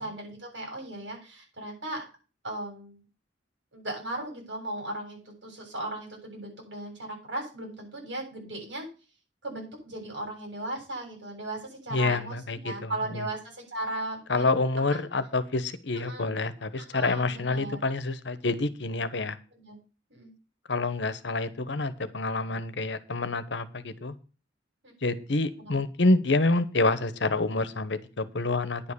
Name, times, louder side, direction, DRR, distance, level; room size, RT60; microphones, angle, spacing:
voice 1, 0.0-2.0 2.4-3.0 3.7-8.9 9.4-14.5 14.9-15.0 16.1-16.3 16.9-17.8 19.5-19.8 20.1-20.3 24.8-24.9 25.6-25.8, right 1 dB, 80° right, 1 dB, 7.4 m, -37 dB
voice 2, 11.9-13.3 14.3-19.4 20.7-24.1 25.0-28.9, left 3 dB, 70° left, 14 dB, 1.0 m, -27 dB
10.0 x 5.5 x 8.3 m, 0.35 s
head